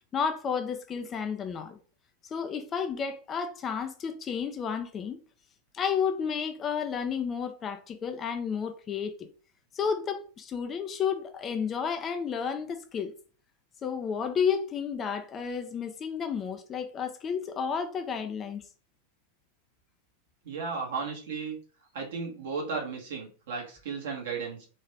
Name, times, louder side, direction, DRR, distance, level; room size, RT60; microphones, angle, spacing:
voice 1, 0.1-1.8 2.3-5.2 5.7-9.3 9.7-13.1 13.8-18.6, left 6 dB, 25° left, 0.6 m, -31 dB
voice 2, 20.4-21.6 21.9-24.7, right 5 dB, 55° right, 1.8 m, -34 dB
4.0 x 3.1 x 3.3 m
figure-of-eight pair, 90°, 0 cm